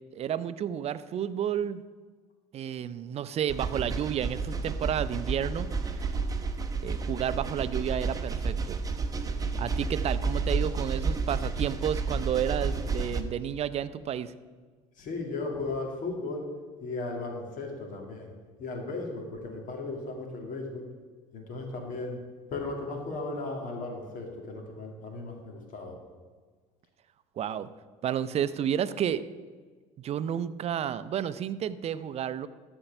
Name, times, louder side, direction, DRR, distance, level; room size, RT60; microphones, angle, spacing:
voice 1, 0.1-1.8 2.5-5.7 6.0-6.1 6.8-8.8 9.6-14.3 27.4-27.7 28.0-29.2 30.0-32.5, right 9 dB, 40° right, 14 dB, 0.5 m, -31 dB
sound 1, 3.5-13.2, right 4 dB, 25° right, 0.8 m, -31 dB
voice 2, 15.0-16.5 16.8-18.3 18.6-20.9 21.3-22.2 22.5-25.9, left 3 dB, 60° left, 2 dB, 2.1 m, -36 dB
13.5 x 4.5 x 5.8 m, 1.5 s
supercardioid pair, 85°, 16 cm